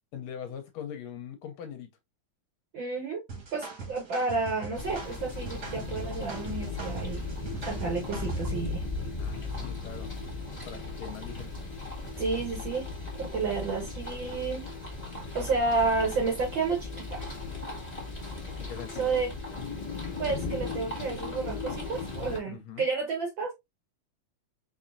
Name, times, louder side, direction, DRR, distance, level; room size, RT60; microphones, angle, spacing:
voice 1, 0.1-1.9 9.2-10.2 10.7-11.7 18.5-19.1 22.5-22.9, left 8 dB, 75° left, 1.6 m, -42 dB
voice 2, 2.7-3.2 3.5-7.3 7.6-8.8 12.2-12.9 13.2-14.7 15.3-17.3 19.0-19.3 20.2-23.5, right 4 dB, 70° right, 1.1 m, -31 dB
sound 1, 3.3-8.6, right 4 dB, 45° right, 1.3 m, -42 dB
sound 2, 4.7-22.4, left 3 dB, 25° left, 0.8 m, -37 dB
4.3 x 4.1 x 2.5 m
omnidirectional pair, 3.6 m